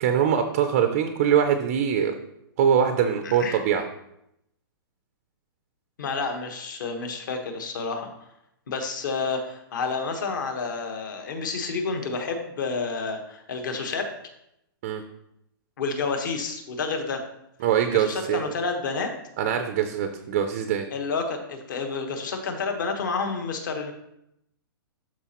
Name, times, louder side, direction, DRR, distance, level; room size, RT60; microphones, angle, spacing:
voice 1, 0.0-2.1 2.6-3.8 14.8-15.0 17.6-18.4 19.4-20.9, right 8 dB, 20° right, 7 dB, 0.3 m, -23 dB
voice 2, 3.2-3.6 6.0-8.1 8.7-14.1 15.8-17.2 17.8-19.1 20.9-23.9, left 4 dB, 55° left, 5 dB, 1.2 m, -29 dB
12.5 x 4.2 x 2.9 m, 0.81 s
hypercardioid pair, 175°, 13 cm